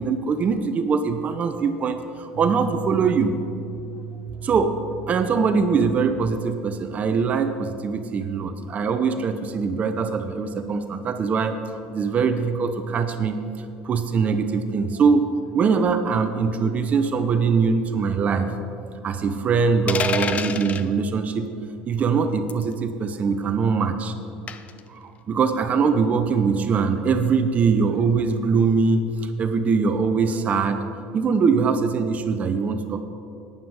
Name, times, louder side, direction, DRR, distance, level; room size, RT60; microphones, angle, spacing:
voice 1, 0.0-3.3 4.4-4.7 5.1-11.6 11.9-15.3 15.5-18.5 19.0-21.5 21.9-24.1 24.9-30.8 31.1-33.0, right 5 dB, 35° right, 8 dB, 0.6 m, -22 dB
sound 1, 2.3-9.6, right 7 dB, 70° right, 0.9 m, -38 dB
sound 2, 19.9-20.9 22.5-22.7 24.5-24.8, left 6 dB, 35° left, 0.6 m, -27 dB
11.5 x 9.7 x 4.8 m, 2.7 s
supercardioid pair, 115°, 4 cm